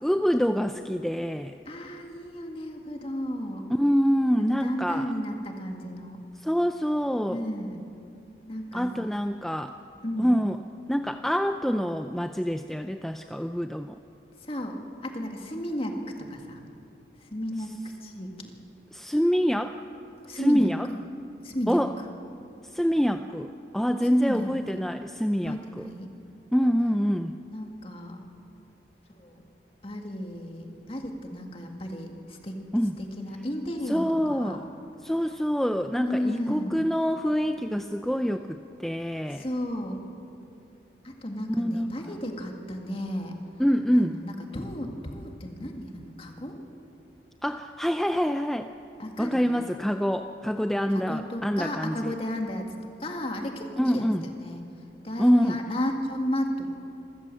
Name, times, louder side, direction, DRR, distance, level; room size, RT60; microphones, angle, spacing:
voice 1, 0.0-1.6 3.7-5.1 6.4-7.4 8.7-9.7 10.2-10.6 10.9-14.0 18.9-19.7 20.3-20.9 21.7-21.9 22.6-25.9 26.5-27.4 32.7-33.0 33.9-34.6 35.0-39.4 41.6-42.1 43.6-44.2 47.4-48.7 49.2-52.1 53.8-54.3 55.2-55.6, equal, ahead, 7 dB, 0.4 m, -26 dB
voice 2, 1.7-3.6 4.4-6.2 7.3-7.8 8.5-8.9 10.0-10.3 14.4-14.8 15.0-16.6 17.2-17.7 18.0-18.3 20.3-21.0 21.4-21.8 24.1-24.5 25.4-26.1 27.5-28.3 29.1-29.4 29.8-32.6 33.0-34.6 36.0-36.9 39.3-40.0 41.0-43.4 43.9-46.6 49.0-49.7 50.9-54.6 55.0-56.7, equal, 30° left, 3 dB, 2.1 m, -33 dB
26.5 x 14.5 x 7.7 m, 2.7 s
head